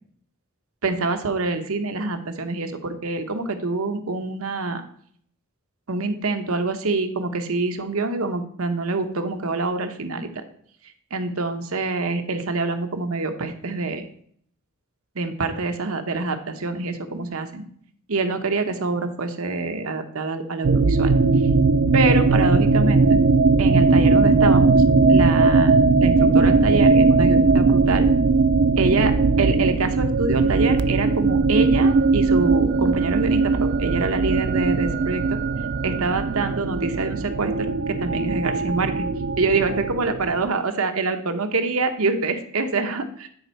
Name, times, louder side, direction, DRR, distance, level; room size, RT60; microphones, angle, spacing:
voice 1, 0.8-4.8 5.9-10.4 11.1-14.1 15.2-17.6 18.1-21.1 21.9-23.2 23.6-24.8 25.1-28.1 28.8-35.4 35.8-39.1 39.4-43.3, right 3 dB, 80° right, 7 dB, 1.0 m, -25 dB
sound 1, 20.6-40.5, right 4 dB, 50° right, 0.4 m, -19 dB
9.8 x 4.4 x 4.5 m, 0.63 s
head